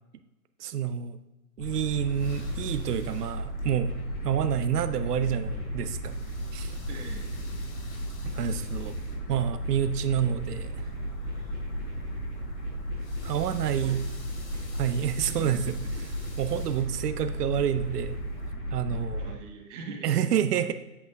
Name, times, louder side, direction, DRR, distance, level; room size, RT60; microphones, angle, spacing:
voice 1, 0.6-1.2 1.6-4.0 4.2-6.2 6.5-6.8 8.2-9.0 9.3-10.8 13.2-14.0 14.7-15.7 16.4-18.2 18.7-19.4 20.0-20.7, right 9 dB, 75° right, 11 dB, 0.6 m, -28 dB
sound 1, 1.6-19.3, equal, 20° left, 1.9 m, -34 dB
sound 2, 1.8-18.5, left 1 dB, 60° left, 2.0 m, -50 dB
voice 2, 6.9-7.4 13.8-14.0 14.5-14.6 15.2-15.6 19.2-20.3, right 4 dB, 50° right, 1 dB, 1.4 m, -42 dB
8.1 x 5.9 x 2.3 m, 1.0 s
hypercardioid pair, 135°, 47 cm